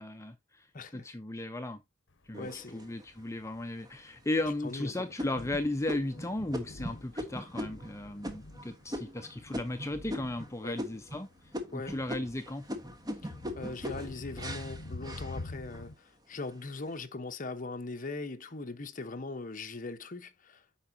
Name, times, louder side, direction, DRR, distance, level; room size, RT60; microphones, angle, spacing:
voice 1, 0.0-0.7 0.9-1.8 2.3-11.3 11.7-12.7, left 1 dB, 15° left, 0.7 m, -35 dB
voice 2, 0.7-1.1 2.4-2.9 4.6-4.9 10.6-10.8 11.7-12.0 13.2-20.6, left 3 dB, 40° left, 1.0 m, -40 dB
Thunder, 2.3-15.9, left 2 dB, 65° left, 1.0 m, -47 dB
sound 1, 2.3-3.2 3.8-3.9 4.4-4.7 5.2-10.5 10.8-11.3 11.5-15.9 16.3-16.9, equal, 20° right, 1.3 m, -40 dB
8.6 x 5.9 x 2.7 m
head